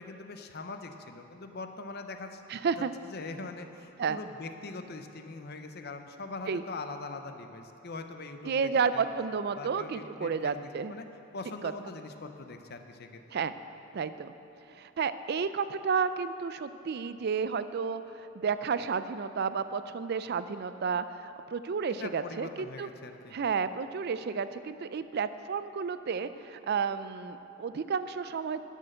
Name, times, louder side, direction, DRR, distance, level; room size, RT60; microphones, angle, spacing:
voice 1, 0.0-2.4 2.8-2.9 3.1-9.0 9.6-10.6 10.9-11.1 11.3-13.4 21.9-23.4, left 3 dB, 45° left, 7 dB, 0.7 m, -42 dB
voice 2, 2.5-2.9 4.0-4.2 6.5-6.6 8.5-10.9 11.6-11.7 13.3-13.5 13.9-14.3 14.8-18.0 18.3-22.9 23.3-28.6, right 5 dB, 45° right, 12 dB, 0.4 m, -31 dB
13.0 x 6.5 x 6.4 m, 3.0 s
head